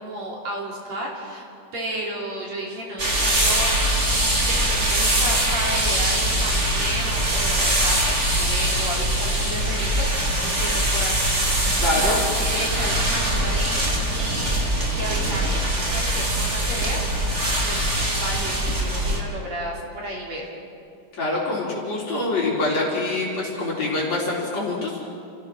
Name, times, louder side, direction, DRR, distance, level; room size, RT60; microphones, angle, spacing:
voice 1, 0.0-1.5 1.7-3.9 4.4-11.2 11.9-15.6 15.9-17.3 17.6-17.9 18.2-20.5, right 1 dB, 40° right, -2 dB, 3.8 m, -33 dB
sound 1, 3.0-19.2, right 1 dB, 25° right, 1.7 m, -22 dB
voice 2, 11.8-12.2 21.1-25.1, left 2 dB, 40° left, -5 dB, 4.4 m, -25 dB
30.0 x 16.0 x 6.2 m, 2.6 s
omnidirectional pair, 5.1 m